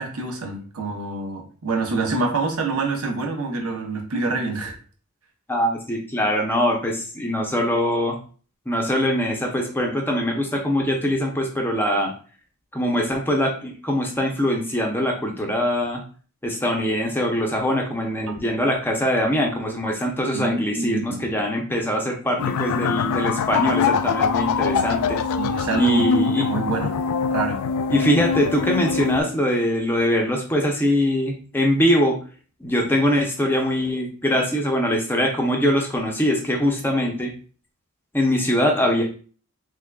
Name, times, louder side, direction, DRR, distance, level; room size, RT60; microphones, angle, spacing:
voice 1, 0.0-4.8 18.3-18.4 20.3-21.2 22.4-22.8 25.4-27.0 27.3-27.6, right 3 dB, 75° right, 3 dB, 0.8 m, -27 dB
voice 2, 5.5-8.2 8.7-12.1 12.7-16.0 16.4-25.2 25.8-26.4 27.9-32.2 32.6-37.3 38.1-39.0, equal, 10° left, 1 dB, 0.5 m, -22 dB
sound 1, 22.4-29.2, left 5 dB, 80° left, 0.3 m, -23 dB
3.6 x 3.2 x 2.2 m, 0.40 s
head